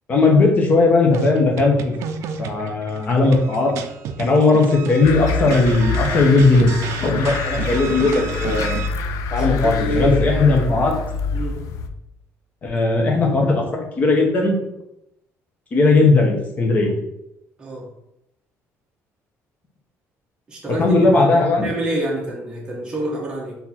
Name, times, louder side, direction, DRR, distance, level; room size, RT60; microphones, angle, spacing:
voice 1, 0.1-1.9 2.4-3.7 4.2-6.7 7.0-8.8 9.3-10.9 12.6-14.6 15.7-16.9 20.7-21.7, left 3 dB, 30° left, 1 dB, 0.8 m, -17 dB
sound 1, 1.1-8.9, right 7 dB, 60° right, 0.4 m, -31 dB
sound 2, 5.0-11.9, left 5 dB, 75° left, 0.4 m, -25 dB
voice 2, 9.3-10.8 11.3-11.6 16.8-16.9 17.6-17.9 20.5-21.0 21.3-23.5, right 1 dB, 15° right, -3 dB, 1.0 m, -27 dB
4.3 x 2.8 x 4.2 m, 0.83 s
cardioid pair, 180°, 6 cm